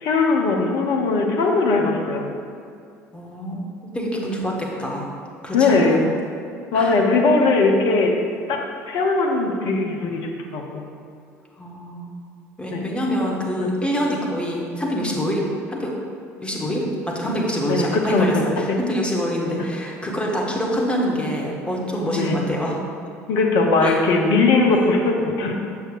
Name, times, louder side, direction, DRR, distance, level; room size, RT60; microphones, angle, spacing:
voice 1, 0.0-2.3 5.5-6.0 6.7-8.1 8.5-10.9 12.7-12.8 13.6-13.7 17.7-18.6 22.1-22.3 23.3-25.5, left 3 dB, 55° left, 2 dB, 0.8 m, -19 dB
voice 2, 3.1-3.6 3.9-5.1 5.4-6.0 6.7-6.9 11.6-12.1 12.6-15.4 15.7-15.9 16.4-22.8 23.8-24.0 24.6-24.9, equal, 10° left, -2 dB, 1.5 m, -25 dB
8.1 x 6.5 x 2.5 m, 2.4 s
figure-of-eight pair, 60°, 8 cm